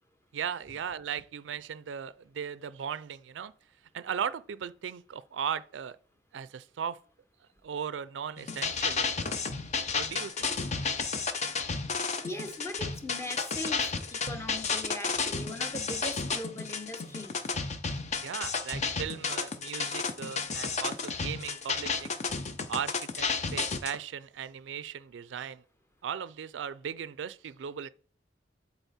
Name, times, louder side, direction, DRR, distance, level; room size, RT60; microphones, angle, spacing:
voice 1, 0.3-3.5 3.9-6.0 6.3-7.0 7.6-9.3 9.9-10.5 18.2-22.2 22.7-25.6 26.0-27.9, right 8 dB, 80° right, 0.4 m, -37 dB
sound 1, 8.4-24.0, left 4 dB, 40° left, 0.7 m, -32 dB
voice 2, 12.2-17.4, left 1 dB, 15° left, 0.9 m, -40 dB
8.0 x 4.2 x 4.2 m
head